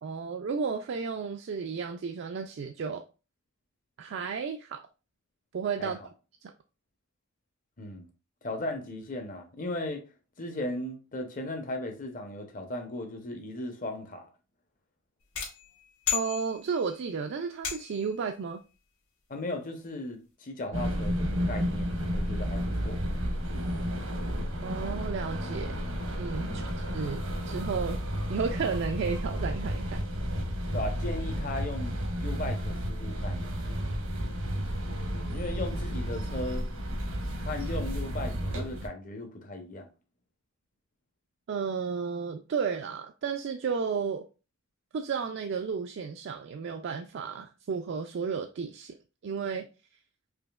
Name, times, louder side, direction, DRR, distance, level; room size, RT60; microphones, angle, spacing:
voice 1, 0.0-3.0 4.0-4.8 5.5-6.0 6.4-6.5 16.1-18.6 24.6-25.8 26.2-26.7 26.9-28.0 28.3-30.0 41.5-44.3 44.9-49.0 49.2-49.7, right 5 dB, 55° right, 0.3 m, -33 dB
voice 2, 7.8-8.1 8.4-10.0 10.4-14.3 19.3-23.0 26.4-26.7 30.7-33.5 35.3-36.7 37.4-39.9, left 1 dB, 40° left, 0.8 m, -37 dB
sound 1, 15.4-17.0 17.6-18.2, left 9 dB, 85° left, 1.6 m, -34 dB
sound 2, 20.7-38.9, equal, 85° right, 1.0 m, -32 dB
4.9 x 2.8 x 2.3 m
head